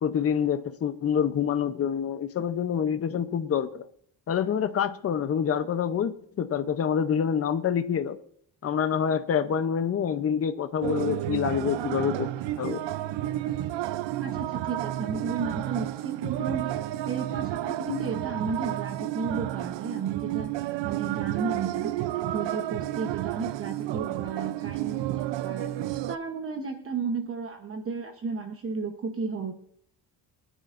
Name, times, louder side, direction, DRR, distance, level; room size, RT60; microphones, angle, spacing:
voice 1, 0.0-3.9 4.3-6.1 6.4-8.2 8.6-12.3 12.6-12.8, left 8 dB, 35° left, 0.6 m, -26 dB
sound 1, 10.8-26.2, right 14 dB, 85° right, 0.6 m, -31 dB
voice 2, 14.2-20.5 20.8-25.7 26.1-29.5, right 5 dB, 30° right, 0.9 m, -33 dB
24.5 x 10.0 x 2.5 m
cardioid pair, 165°, 42 cm